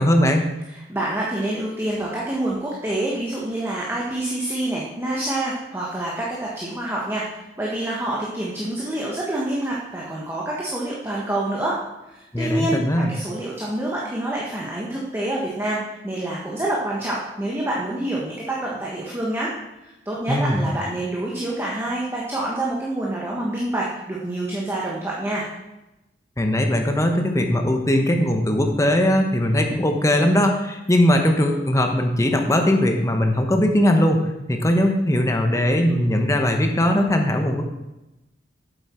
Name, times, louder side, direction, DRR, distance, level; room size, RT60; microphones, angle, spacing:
voice 1, 0.0-0.5 12.3-13.1 20.3-20.6 26.4-34.2 34.5-37.6, left 1 dB, 20° left, 4 dB, 1.0 m, -19 dB
voice 2, 0.7-7.2 7.6-11.8 12.1-12.8 13.1-15.8 16.0-19.5 19.8-25.4, right 1 dB, 15° right, -4 dB, 1.2 m, -27 dB
8.2 x 8.0 x 4.4 m, 0.97 s
head